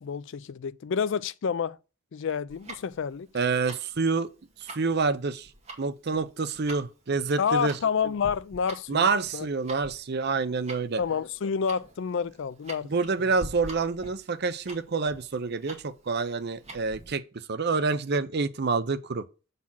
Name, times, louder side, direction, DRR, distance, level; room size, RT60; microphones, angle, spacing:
voice 1, 0.0-1.8 2.1-3.3 7.4-9.1 9.3-9.5 11.0-12.9, left 6 dB, 60° left, 0.4 m, -29 dB
Tick-tock, 2.5-17.1, right 2 dB, 30° right, 1.8 m, -45 dB
voice 2, 3.3-4.3 4.6-5.5 5.8-7.8 8.9-11.0 12.8-19.2, right 4 dB, 50° right, 0.6 m, -27 dB
7.4 x 4.1 x 5.5 m
head